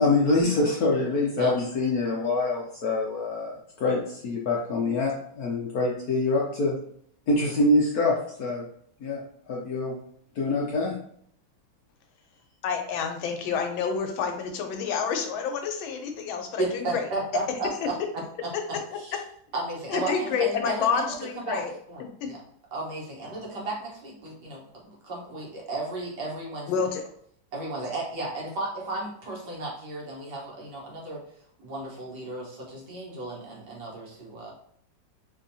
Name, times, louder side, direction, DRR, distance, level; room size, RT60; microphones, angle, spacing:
voice 1, 0.0-6.7 7.3-8.7 9.0-9.2 9.5-9.9 10.4-11.0, left 2 dB, 70° left, -3 dB, 0.9 m, -25 dB
voice 2, 12.6-17.0 19.9-21.7 22.2-22.3 26.7-27.0, left 6 dB, 85° left, 5 dB, 1.4 m, -28 dB
voice 3, 16.6-17.9 19.0-19.2 19.5-21.1 21.4-21.6 21.9-22.4 22.7-26.7 27.5-31.2 31.6-34.5, right 2 dB, 65° right, -3 dB, 1.6 m, -34 dB
4.3 x 2.7 x 2.7 m, 0.64 s
omnidirectional pair, 2.1 m